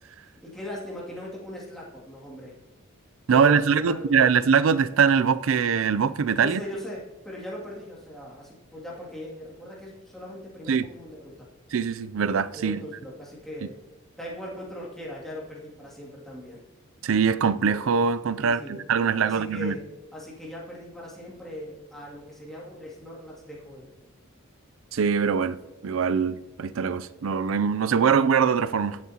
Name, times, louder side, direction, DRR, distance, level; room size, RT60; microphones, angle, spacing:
voice 1, 0.4-2.6 3.3-4.3 6.4-11.5 12.5-13.7 14.2-16.6 18.4-18.8 19.2-19.9 20.1-23.9, equal, ahead, 2.4 m, -39 dB
voice 2, 3.3-6.6 10.7-10.9 11.7-12.8 17.0-19.7 24.9-25.6 25.8-29.0, right 6 dB, 70° right, 0.4 m, -22 dB
20.5 x 7.5 x 2.9 m
head